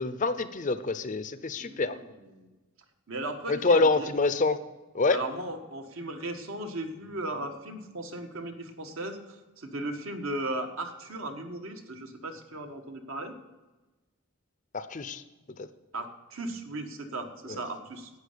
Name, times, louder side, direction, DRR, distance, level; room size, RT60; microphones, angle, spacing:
voice 1, 0.0-2.0 3.5-4.6 4.9-5.2 14.7-15.2 15.6-15.7 17.5-17.6, left 3 dB, 35° left, 12 dB, 0.6 m, -26 dB
voice 2, 1.5-2.0 2.3-2.5 3.1-4.1 5.1-13.3 15.9-18.1, right 2 dB, 65° right, 4 dB, 1.5 m, -37 dB
11.0 x 8.8 x 6.8 m, 1.1 s
head